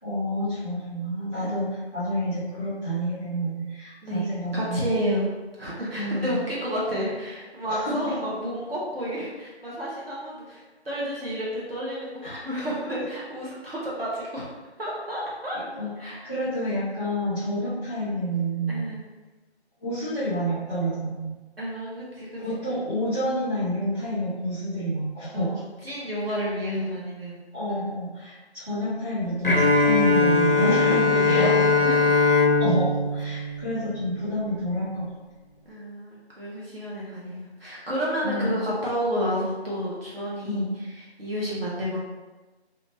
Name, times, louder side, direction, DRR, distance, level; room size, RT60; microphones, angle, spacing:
voice 1, 0.0-5.0 5.9-6.4 7.7-8.1 12.2-12.4 13.0-13.1 15.5-18.9 19.8-21.3 22.4-25.6 26.3-26.4 27.5-32.2 32.6-35.1 38.2-38.5 40.4-40.7, equal, 10° right, -20 dB, 1.1 m, -29 dB
voice 2, 4.0-14.5 14.8-15.6 16.0-16.3 18.7-19.0 21.6-22.3 25.3-27.4 27.7-27.9 30.6-30.9 31.2-32.1 35.6-40.6 41.2-42.0, equal, 60° right, -6 dB, 1.2 m, -31 dB
Bowed string instrument, 29.4-34.3, left 3 dB, 55° left, 0.5 m, -21 dB
3.5 x 2.5 x 2.8 m, 1.2 s
figure-of-eight pair, 170°, 33 cm